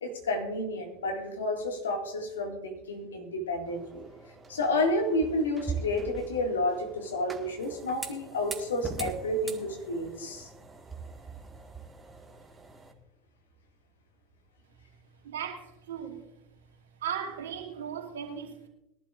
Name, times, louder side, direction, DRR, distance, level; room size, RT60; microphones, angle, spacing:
voice 1, 0.0-4.0 4.5-10.5, left 1 dB, 85° left, 3 dB, 2.1 m, -30 dB
sound 1, 3.7-12.9, right 5 dB, 20° right, 1.7 m, -42 dB
voice 2, 15.2-16.3 17.0-18.7, right 8 dB, 80° right, 0 dB, 2.6 m, -37 dB
21.5 x 11.5 x 2.5 m, 0.91 s
hypercardioid pair, 70°, 0 cm